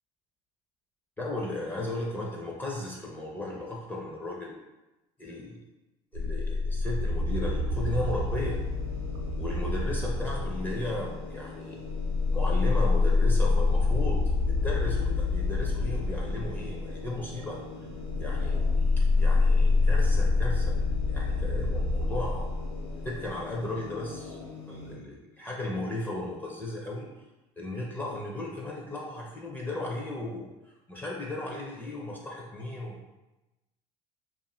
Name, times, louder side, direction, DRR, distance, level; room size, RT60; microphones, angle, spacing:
voice 1, 1.2-4.5 5.2-5.6 6.1-8.6 9.4-11.8 12.3-17.6 18.2-18.6 19.2-20.8 21.1-22.5 23.0-24.4 24.7-27.1 27.6-30.5 30.9-33.0, left 2 dB, 15° left, -3 dB, 0.4 m, -35 dB
sound 1, 6.1-11.3 11.8-23.4, left 3 dB, 75° right, 0.6 m, -26 dB
sound 2, 7.7-24.9, left 4 dB, 85° left, 1.2 m, -44 dB
2.5 x 2.4 x 3.0 m, 1.0 s
cardioid pair, 130°, 14 cm